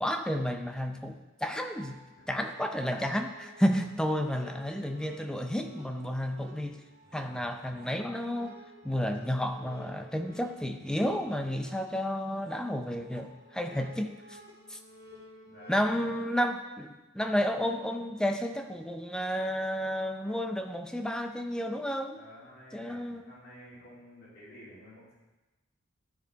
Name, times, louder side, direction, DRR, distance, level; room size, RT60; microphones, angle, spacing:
voice 1, 0.0-2.0 2.3-6.8 7.1-14.4 14.7-14.8 15.7-22.2 22.7-23.2, equal, 5° left, 6 dB, 0.5 m, -31 dB
sound 1, 1.4-15.8, equal, 45° right, 2.2 m, -53 dB
voice 2, 7.0-7.6 15.4-15.9 22.1-25.1, equal, 50° left, -7 dB, 3.1 m, -52 dB
12.5 x 4.9 x 4.6 m, 1.1 s
head